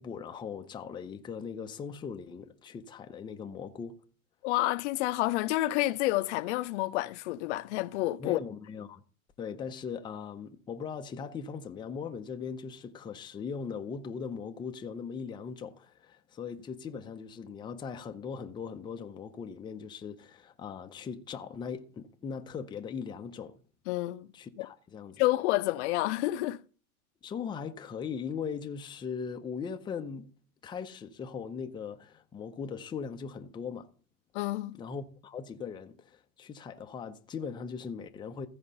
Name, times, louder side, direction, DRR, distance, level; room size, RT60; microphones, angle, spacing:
voice 1, 0.0-4.0 8.2-9.0 9.4-23.6 24.3-25.2 27.2-30.3 30.6-33.9 34.8-38.5, left 6 dB, 10° left, 0.6 m, -39 dB
voice 2, 4.4-8.4 23.9-24.3 24.6-24.7 25.2-26.6 34.3-34.8, left 18 dB, 50° left, 0.7 m, -29 dB
14.5 x 5.0 x 5.4 m
hypercardioid pair, 125°, 43 cm